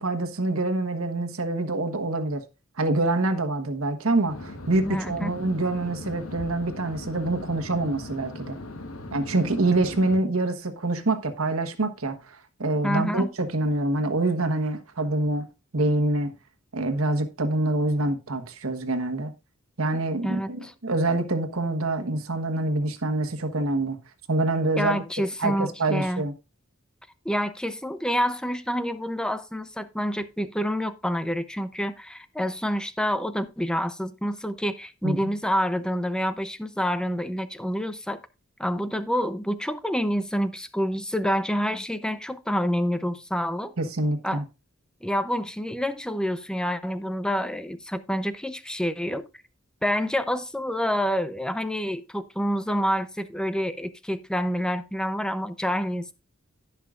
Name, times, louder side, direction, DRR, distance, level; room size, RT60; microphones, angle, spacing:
voice 1, 0.0-2.4 2.8-8.6 9.1-12.2 12.6-15.5 15.7-16.3 16.7-19.3 19.8-24.0 24.3-25.0 25.4-26.3 35.0-35.3 43.8-44.4, right 2 dB, 85° right, 1.3 m, -26 dB
sound 1, 4.3-10.2, left 2 dB, 85° left, 1.3 m, -39 dB
voice 2, 4.8-5.3 12.8-13.3 20.2-20.7 24.8-26.2 27.2-38.2 38.6-43.7 44.2-44.4 45.0-49.3 49.8-56.1, equal, 5° left, 0.6 m, -28 dB
16.5 x 5.7 x 2.5 m
head